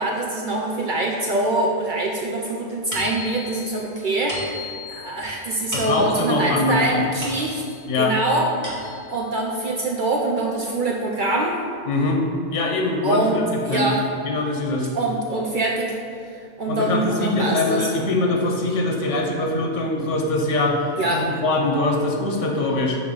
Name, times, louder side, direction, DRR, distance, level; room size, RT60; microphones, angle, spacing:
voice 1, 0.0-7.6 8.0-8.5 9.1-11.6 13.0-14.0 14.9-16.0 16.6-17.9 21.0-21.3, right 2 dB, 60° right, -1 dB, 0.5 m, -24 dB
sound 1, 2.9-7.9 8.3-9.2, left 1 dB, 15° right, 1.2 m, -36 dB
voice 2, 5.7-7.0 7.9-8.1 11.9-12.2 12.5-14.0 14.2-14.9 16.7-23.0, left 2 dB, 80° left, 1 dB, 1.2 m, -23 dB
6.4 x 2.9 x 5.1 m, 2.4 s
omnidirectional pair, 1.2 m